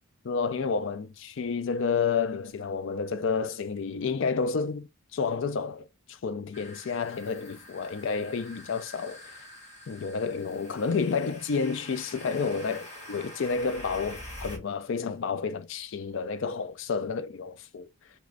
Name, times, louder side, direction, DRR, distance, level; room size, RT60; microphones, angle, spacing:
voice 1, 0.2-4.9 5.1-9.4 9.9-17.9, left 5 dB, 55° left, 0.4 m, -30 dB
sound 1, 6.5-14.6, left 1 dB, 30° left, 1.2 m, -46 dB
2.9 x 2.5 x 3.2 m
head